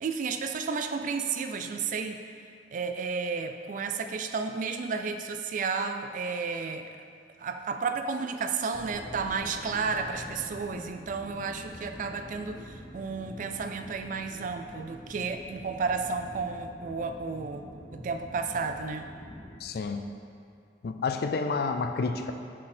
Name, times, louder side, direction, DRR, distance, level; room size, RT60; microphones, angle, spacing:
voice 1, 0.0-2.2 2.7-6.9 7.4-19.1, right 5 dB, 45° right, 7 dB, 0.3 m, -32 dB
sound 1, 8.7-19.6, left 1 dB, 20° left, 0.7 m, -45 dB
voice 2, 19.6-20.0 20.8-22.3, left 4 dB, 60° left, 6 dB, 0.4 m, -29 dB
6.1 x 4.1 x 4.2 m, 2.4 s
head